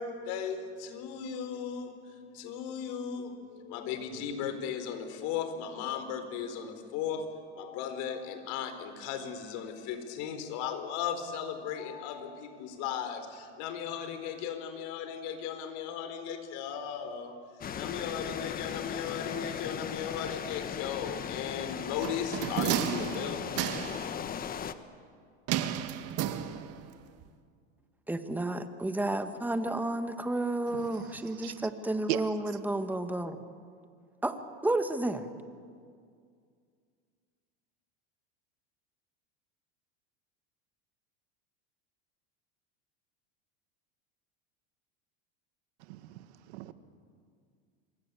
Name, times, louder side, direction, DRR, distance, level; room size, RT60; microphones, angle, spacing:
voice 1, 0.0-7.3 7.5-17.4 17.7-24.1, left 8 dB, 60° left, 4.4 m, -37 dB
sound 1, 17.6-24.7, left 8 dB, 25° left, 1.2 m, -37 dB
sound 2, 22.0-24.1 25.5-26.9 27.2-27.3, right 11 dB, 45° right, 1.6 m, -32 dB
voice 2, 28.1-33.4 34.2-35.3, right 2 dB, 5° right, 1.7 m, -31 dB
voice 3, 30.7-31.1 31.3-31.6 32.1-32.2 45.9-46.7, right 17 dB, 75° right, 1.8 m, -37 dB
27.0 x 24.0 x 8.5 m
supercardioid pair, 125°, 33 cm